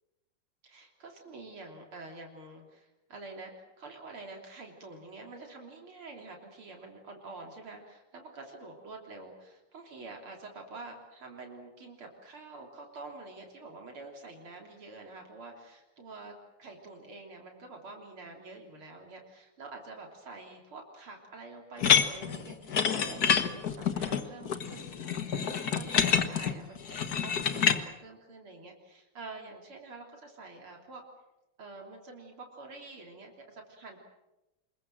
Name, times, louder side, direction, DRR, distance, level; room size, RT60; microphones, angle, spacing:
voice 1, 0.6-25.1 25.4-31.0 31.6-34.0, right 3 dB, 75° right, 1 dB, 4.2 m, -47 dB
sound 1, 21.8-27.8, left 7 dB, 50° left, 1.8 m, -27 dB
26.5 x 22.0 x 7.7 m, 0.98 s
omnidirectional pair, 2.4 m